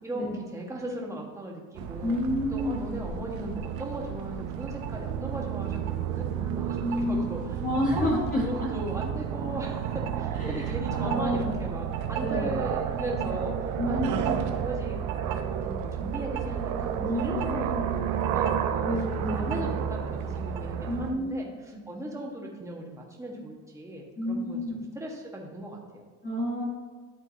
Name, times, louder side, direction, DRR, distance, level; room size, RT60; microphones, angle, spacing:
voice 1, 0.5-2.2 2.5-7.6 7.9-18.9 19.3-26.0, right 1 dB, 10° right, -2 dB, 1.4 m, -38 dB
sound 1, 1.8-21.1, right 9 dB, 60° right, 0.7 m, -31 dB
voice 2, 2.0-2.8 6.8-7.3 7.6-8.4 10.3-11.5 12.2-12.6 13.8-14.4 17.0-17.8 18.8-19.6 20.8-21.4 24.2-24.8 26.2-26.7, left 1 dB, 25° left, -3 dB, 1.3 m, -29 dB
11.5 x 3.8 x 2.8 m, 1.4 s
cardioid pair, 110°, 33 cm